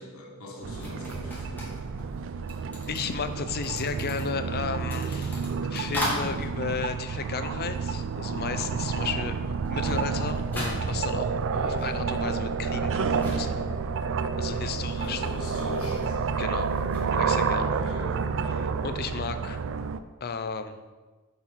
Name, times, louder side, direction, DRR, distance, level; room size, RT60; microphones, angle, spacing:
voice 1, 0.0-1.7 11.5-11.9 14.7-16.4 17.6-18.6, left 1 dB, 80° left, -2 dB, 1.3 m, -41 dB
sound 1, 0.6-20.0, right 5 dB, 60° right, 0.4 m, -30 dB
sound 2, 0.8-8.1 8.4-17.1, equal, 10° left, 1.9 m, -39 dB
voice 2, 2.9-11.4 11.8-13.7 14.4-15.3 16.4-16.7 17.1-17.7 18.5-19.6 20.2-20.8, left 5 dB, 45° left, 9 dB, 0.5 m, -34 dB
7.4 x 4.6 x 5.7 m, 1.3 s
head